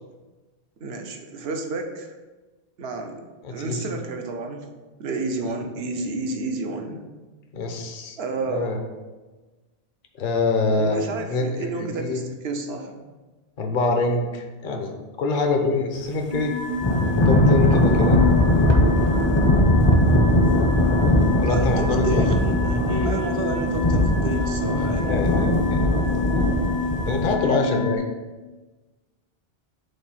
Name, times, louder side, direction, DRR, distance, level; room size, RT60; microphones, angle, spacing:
voice 1, 0.8-2.1 2.8-3.2 3.5-4.7 5.0-7.0 8.2-8.7 10.8-13.1 21.5-25.2, right 3 dB, 75° right, 4 dB, 1.0 m, -30 dB
voice 2, 3.4-3.9 5.5-5.6 7.5-8.2 8.5-8.8 10.2-11.0 11.3-12.2 13.6-14.9 15.2-16.5 17.3-18.2 21.4-22.1 25.1-25.8 26.3-26.5 27.1-28.0, left 3 dB, 55° left, 3 dB, 0.9 m, -25 dB
sound 1, 16.3-28.0, left 3 dB, 70° left, 1.7 m, -29 dB
Thunder / Rain, 16.8-27.3, left 1 dB, 30° left, 0.7 m, -20 dB
5.3 x 4.0 x 5.7 m, 1.2 s
omnidirectional pair, 1.1 m